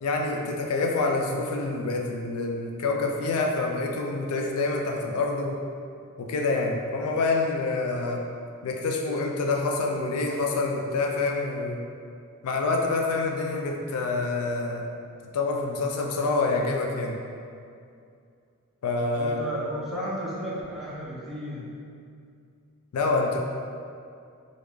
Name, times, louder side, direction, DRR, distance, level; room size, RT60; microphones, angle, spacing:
voice 1, 0.0-5.6 6.2-8.2 8.6-11.8 12.4-14.9 15.3-17.2 18.8-19.4 22.9-23.4, left 3 dB, 75° left, 1 dB, 0.4 m, -27 dB
voice 2, 19.1-21.6, equal, ahead, -9 dB, 0.7 m, -33 dB
3.2 x 2.6 x 3.4 m, 2.4 s
head